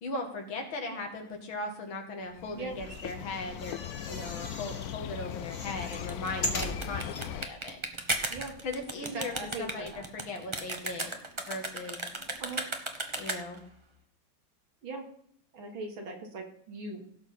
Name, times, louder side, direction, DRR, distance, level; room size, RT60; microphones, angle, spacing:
voice 1, 0.0-3.8 4.1-7.8 8.6-11.1 11.5-12.0 13.2-13.6, left 2 dB, 90° left, 3 dB, 2.8 m, -38 dB
sound 1, 2.3-7.5, left 11 dB, 70° left, 0.9 m, -39 dB
sound 2, 2.7-4.9 5.3-7.3 7.8-7.9 8.1-8.2, left 2 dB, 35° left, 1.9 m, -39 dB
sound 3, 5.8-13.7, right 2 dB, 20° right, 0.8 m, -36 dB
voice 2, 9.1-10.0 12.4-12.6 14.8-15.0 15.5-17.0, right 3 dB, 90° right, 2 dB, 2.9 m, -39 dB
17.0 x 6.7 x 4.2 m, 0.65 s
omnidirectional pair, 2.1 m